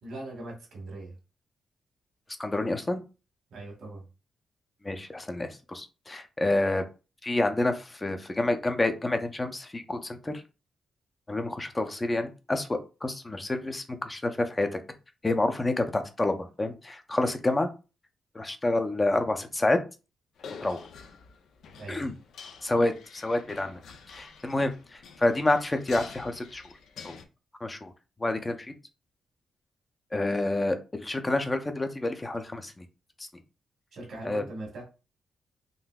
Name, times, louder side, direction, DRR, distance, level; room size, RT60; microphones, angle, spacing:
voice 1, 0.0-1.1 3.5-4.0 21.8-22.0 24.2-24.4 33.9-34.8, right 2 dB, 75° right, -1 dB, 1.6 m, -40 dB
voice 2, 2.4-3.0 4.8-6.8 7.2-10.4 11.3-14.8 15.2-17.7 18.3-19.8 20.6-20.8 21.9-22.1 22.6-23.8 24.1-26.7 27.0-27.2 27.6-27.9 28.2-28.7 30.1-32.9 34.2-34.4, left 2 dB, 25° left, 7 dB, 0.6 m, -28 dB
sound 1, 20.4-27.3, left 5 dB, 80° left, 0.5 m, -47 dB
3.8 x 2.6 x 2.3 m, 0.32 s
cardioid pair, 70°, 0 cm